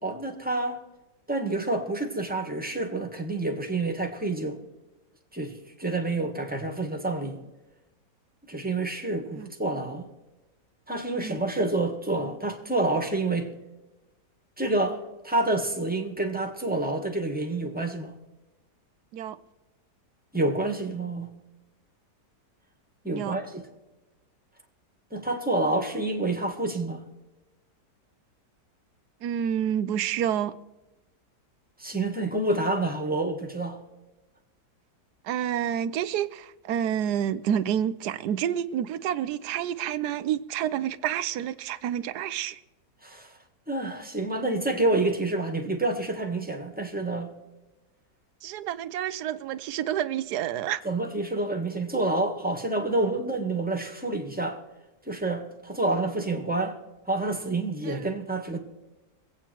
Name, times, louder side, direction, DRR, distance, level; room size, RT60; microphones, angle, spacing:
voice 1, 0.0-0.8 1.3-4.6 5.3-5.5 5.8-7.4 8.5-10.1 10.9-13.5 14.6-18.1 20.3-21.3 23.0-23.6 25.1-27.0 31.8-33.8 43.0-43.3 43.7-47.3 50.8-54.6 55.1-56.8 57.1-58.6, right 2 dB, 5° right, 1.6 m, -28 dB
voice 2, 29.2-30.5 35.2-42.6 48.4-50.8 57.9-58.1, right 10 dB, 75° right, 1.2 m, -29 dB
23.5 x 8.7 x 4.5 m
omnidirectional pair, 1.8 m